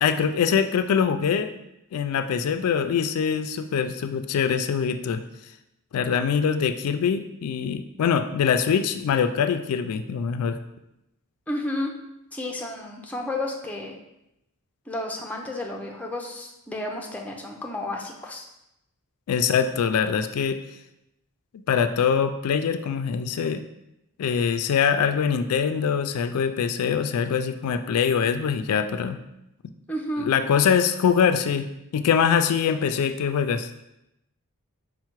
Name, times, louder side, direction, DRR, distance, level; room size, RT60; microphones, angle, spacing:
voice 1, 0.0-1.5 1.9-5.2 5.9-10.6 19.3-20.6 21.7-23.6 24.2-29.2 30.2-31.7 31.9-33.7, left 7 dB, 85° left, 8 dB, 0.3 m, -23 dB
voice 2, 11.5-11.9 12.3-14.0 14.9-18.5 29.9-30.3, left 1 dB, 5° left, 0 dB, 0.5 m, -31 dB
5.5 x 2.1 x 4.5 m, 0.86 s
head